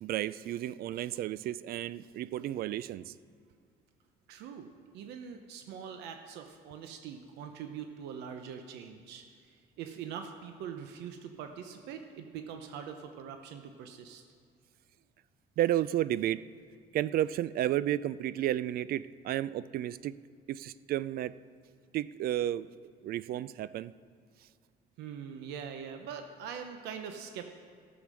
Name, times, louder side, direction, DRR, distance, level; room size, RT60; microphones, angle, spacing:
voice 1, 0.0-3.1 15.6-16.4 16.9-20.2 20.5-21.3 21.9-22.7 23.0-23.9, right 12 dB, 60° right, 17 dB, 0.4 m, -32 dB
voice 2, 4.3-4.7 4.9-14.2 25.0-27.5, right 7 dB, 85° right, 6 dB, 0.9 m, -43 dB
15.0 x 7.2 x 6.3 m, 2.1 s
cardioid pair, 110°, 17 cm